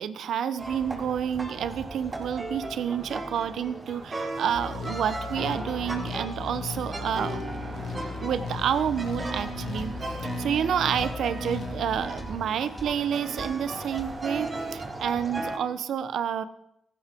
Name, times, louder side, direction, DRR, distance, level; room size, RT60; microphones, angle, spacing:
voice 1, 0.0-7.4 8.2-16.4, right 8 dB, 75° right, 13 dB, 0.9 m, -29 dB
sound 1, 0.6-15.6, right 2 dB, 45° right, 5.8 m, -36 dB
sound 2, 4.5-12.1, left 6 dB, 70° left, 1.5 m, -37 dB
sound 3, 9.8-10.0 11.0-11.2 12.2-12.4 12.8-13.0 13.4-13.6 14.0-14.2, equal, 20° left, 4.7 m, -41 dB
17.5 x 15.0 x 3.7 m, 0.80 s
supercardioid pair, 45°, 0 cm